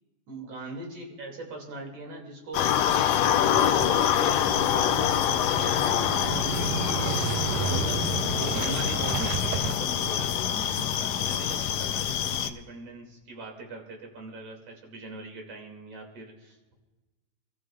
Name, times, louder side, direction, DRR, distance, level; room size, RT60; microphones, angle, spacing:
voice 1, 0.3-10.5 10.9-16.7, right 3 dB, 50° right, 1 dB, 3.6 m, -41 dB
sound 1, 2.5-12.5, left 10 dB, 85° left, 1.5 m, -25 dB
Motorcycle / Engine starting, 3.5-10.8, right 9 dB, 85° right, 2.2 m, -34 dB
sound 2, 9.4-11.9, equal, 65° left, 1.0 m, -47 dB
28.0 x 14.0 x 2.4 m, 1.2 s
omnidirectional pair, 3.8 m